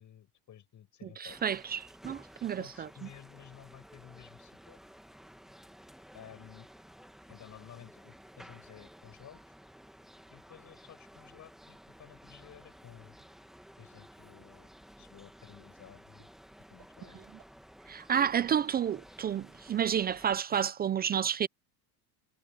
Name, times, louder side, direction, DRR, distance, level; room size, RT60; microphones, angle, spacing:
voice 1, 0.0-1.6 2.6-4.8 6.1-6.7 7.3-9.5 10.3-13.2 13.8-14.7 15.0-16.3 16.7-17.3 18.4-18.6, left 10 dB, 40° left, 7.2 m, -54 dB
voice 2, 1.0-2.9 17.9-21.5, right 8 dB, 20° right, 0.4 m, -30 dB
sound 1, 1.3-20.4, equal, ahead, 1.7 m, -54 dB
sound 2, 12.0-12.1 12.6-12.7 13.2-13.3 13.8-13.9 14.4-14.5 15.0-15.1 15.6-15.7 16.2-16.3 16.8-16.9 17.4-17.5 18.0-18.1 18.6-18.7, right 17 dB, 55° right, 7.1 m, -63 dB
supercardioid pair, 115°, 47 cm